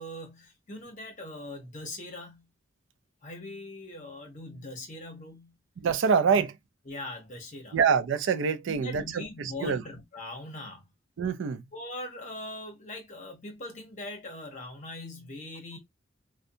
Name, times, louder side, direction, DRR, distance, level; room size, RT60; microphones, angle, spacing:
voice 1, 0.0-2.5 3.2-5.5 6.3-6.4 6.9-7.8 8.7-10.9 11.7-15.8, left 1 dB, 35° left, 0.8 m, -41 dB
voice 2, 5.8-6.5 7.7-9.8 11.2-11.6, right 6 dB, 65° right, 0.3 m, -25 dB
2.6 x 2.1 x 2.6 m
head